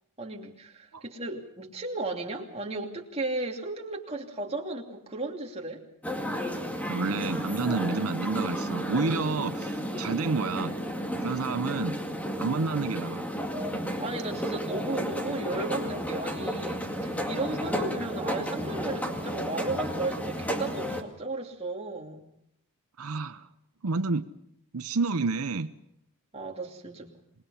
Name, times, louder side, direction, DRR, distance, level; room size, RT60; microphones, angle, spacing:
voice 1, 0.2-5.8 12.3-12.7 13.6-22.3 26.3-27.1, right 2 dB, 30° right, 1 dB, 2.8 m, -35 dB
sound 1, 6.0-21.0, equal, 5° left, 2.2 m, -32 dB
voice 2, 6.9-10.7 11.2-12.0 12.4-13.3 23.0-23.5 23.8-24.3 24.7-25.7, right 4 dB, 85° right, 11 dB, 0.8 m, -29 dB
26.5 x 20.5 x 5.7 m, 0.77 s
head